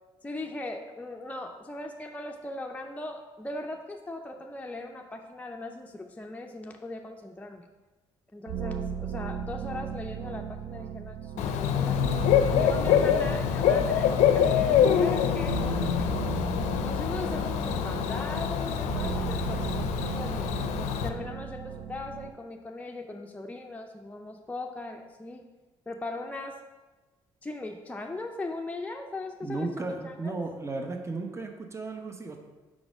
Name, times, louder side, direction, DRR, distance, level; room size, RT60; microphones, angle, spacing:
voice 1, 0.2-7.7 8.3-12.1 12.5-16.2 16.8-20.5 20.9-25.5 25.9-26.6 27.4-30.4, left 2 dB, 10° left, 2 dB, 0.5 m, -39 dB
sound 1, 8.5-22.3, right 7 dB, 90° right, 0.4 m, -37 dB
Bird / Cricket, 11.4-21.1, left 8 dB, 85° left, 0.4 m, -25 dB
voice 2, 29.4-32.4, right 3 dB, 25° right, 4 dB, 0.8 m, -34 dB
4.9 x 3.9 x 4.9 m, 1.2 s
supercardioid pair, 55°, 12 cm